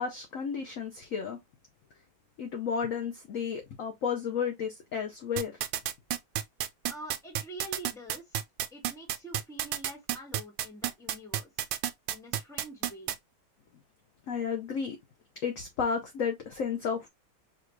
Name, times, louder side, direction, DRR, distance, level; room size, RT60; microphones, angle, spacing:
voice 1, 0.0-1.4 2.4-5.5 14.3-15.0 15.4-17.1, left 6 dB, 60° left, 0.9 m, -32 dB
sound 1, 5.4-13.2, right 12 dB, 80° right, 1.3 m, -30 dB
voice 2, 6.8-8.4 8.7-11.5 12.1-13.1, right 1 dB, ahead, 1.1 m, -46 dB
5.0 x 2.4 x 3.1 m
omnidirectional pair, 2.0 m